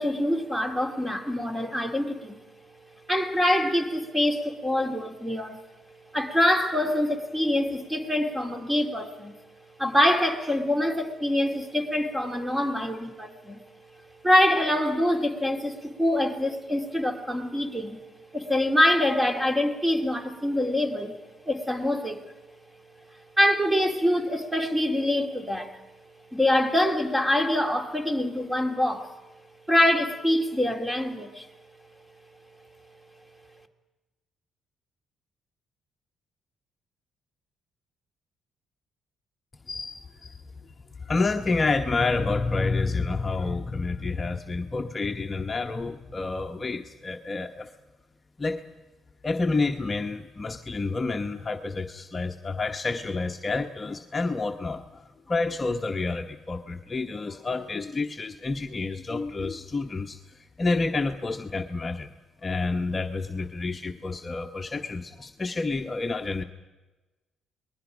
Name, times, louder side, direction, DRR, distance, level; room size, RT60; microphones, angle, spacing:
voice 1, 0.0-2.4 3.1-5.6 6.1-9.4 9.8-13.6 14.2-18.0 18.3-21.2 21.5-22.2 23.4-25.8 26.3-29.1 29.7-31.5, left 1 dB, 10° right, 2.3 m, -25 dB
voice 2, 39.7-40.4 41.0-47.7 48.4-48.6 49.2-62.1 62.4-66.4, left 3 dB, 30° left, 1.0 m, -29 dB
28.5 x 20.5 x 5.1 m
cardioid pair, 90°, 0 cm